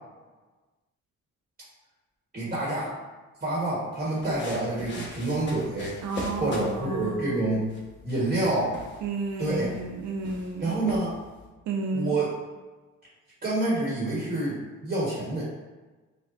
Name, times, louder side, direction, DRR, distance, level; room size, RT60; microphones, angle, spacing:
voice 1, 2.3-2.9 3.4-6.0 6.4-7.7 8.0-8.8 9.4-9.7 10.6-11.2 11.9-12.3 13.4-15.4, right 2 dB, 25° right, -6 dB, 1.2 m, -27 dB
sound 1, 4.0-11.5, left 1 dB, 40° left, 1.1 m, -42 dB
voice 2, 6.0-7.5 9.0-10.8 11.7-12.2, right 3 dB, 75° right, 2 dB, 0.6 m, -32 dB
4.9 x 2.2 x 2.5 m, 1.2 s
cardioid pair, 90°, 30 cm